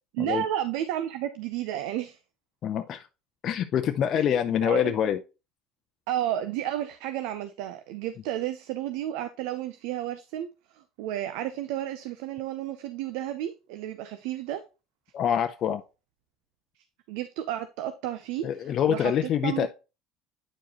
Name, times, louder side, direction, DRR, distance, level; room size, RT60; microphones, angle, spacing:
voice 1, 0.2-2.2 4.1-4.9 6.1-10.5 10.7-14.6 17.1-19.7, right 12 dB, 75° right, 0.6 m, -32 dB
voice 2, 2.6-3.1 3.4-5.2 15.1-15.8 18.4-19.7, left 9 dB, 50° left, 0.6 m, -25 dB
8.8 x 4.7 x 2.9 m
hypercardioid pair, 80°, 0 cm